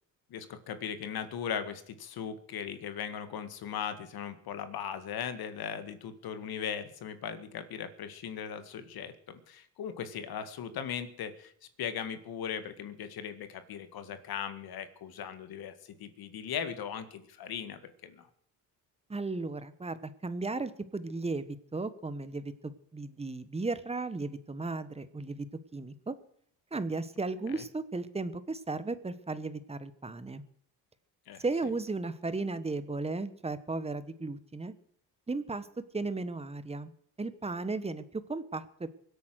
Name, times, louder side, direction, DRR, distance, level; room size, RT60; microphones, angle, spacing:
voice 1, 0.3-9.1 9.5-11.5 11.8-18.3 27.5-27.6 31.3-31.4, left 8 dB, 70° left, 10 dB, 2.0 m, -38 dB
voice 2, 19.1-25.5 25.7-26.1 26.7-30.4 31.4-34.7 35.3-35.7 35.9-36.9 37.2-38.9, right 3 dB, 15° right, 14 dB, 1.3 m, -35 dB
23.5 x 8.5 x 6.4 m, 0.63 s
cardioid pair, 105°, 38 cm